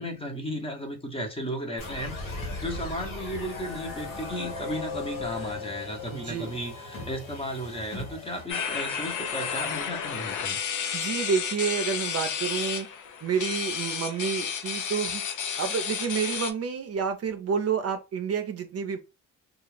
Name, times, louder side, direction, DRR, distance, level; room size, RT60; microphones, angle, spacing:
voice 1, 0.0-10.6, equal, 15° left, 0.8 m, -35 dB
sound 1, 1.8-8.5, left 3 dB, 85° left, 1.2 m, -37 dB
voice 2, 6.1-6.5 10.9-12.9 13.2-15.2 15.6-19.0, right 6 dB, 50° right, 0.6 m, -29 dB
sound 2, 8.5-16.5, left 7 dB, 65° left, 0.6 m, -31 dB
2.4 x 2.4 x 3.2 m
cardioid pair, 90°, 32 cm